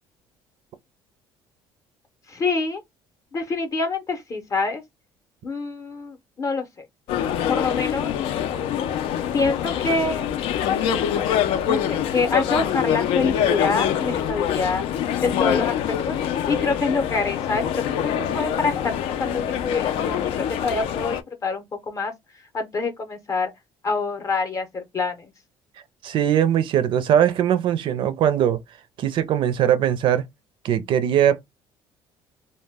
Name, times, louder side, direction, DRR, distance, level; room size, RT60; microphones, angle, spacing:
voice 1, 2.3-2.8 3.3-4.8 5.4-6.9 7.5-8.1 9.3-10.3 11.7-14.9 15.2-15.8 16.1-22.1 22.5-23.5 23.8-25.3, left 4 dB, 35° left, 0.6 m, -26 dB
sound 1, 7.1-21.2, left 9 dB, 75° left, 0.4 m, -25 dB
voice 2, 26.0-28.6 29.0-30.2 30.6-31.4, right 10 dB, 55° right, 0.5 m, -20 dB
2.1 x 2.1 x 3.3 m
cardioid pair, 120°, 10 cm